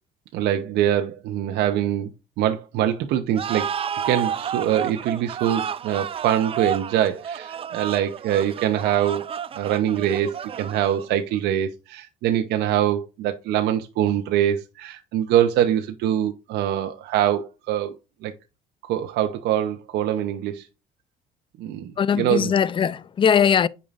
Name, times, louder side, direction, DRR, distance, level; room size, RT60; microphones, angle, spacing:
voice 1, 0.3-2.1 2.4-3.7 4.0-9.3 9.5-17.9 18.2-18.3 18.9-20.7 21.6-22.5, right 11 dB, 80° right, 0.8 m, -23 dB
sound 1, 3.4-11.2, right 8 dB, 35° right, 0.4 m, -31 dB
voice 2, 22.0-23.7, left 7 dB, 30° left, 0.4 m, -20 dB
8.5 x 5.5 x 2.5 m
cardioid pair, 110°, 17 cm